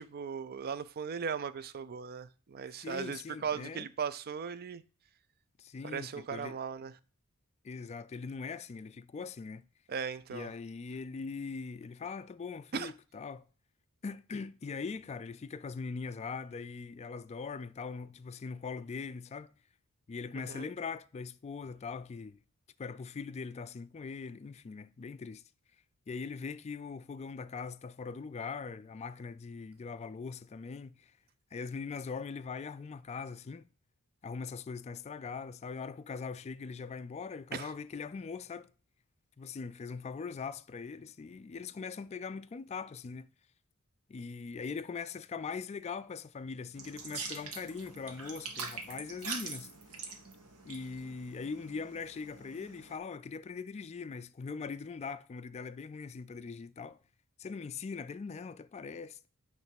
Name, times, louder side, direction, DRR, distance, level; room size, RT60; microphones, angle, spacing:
voice 1, 0.0-4.8 5.8-6.9 9.9-10.5 12.7-12.9 20.4-20.7 37.5-37.7, right 6 dB, 45° right, 0.4 m, -38 dB
voice 2, 2.8-3.9 5.6-6.6 7.6-9.6 10.3-13.5 14.0-19.5 20.1-22.4 22.8-25.4 26.1-31.1 31.5-33.7 34.2-38.7 39.4-43.3 44.1-49.7 50.6-57.0 57.4-59.3, left 5 dB, 30° left, 0.3 m, -41 dB
sound 1, 46.7-53.0, right 4 dB, 80° right, 1.4 m, -44 dB
9.1 x 3.2 x 5.8 m
head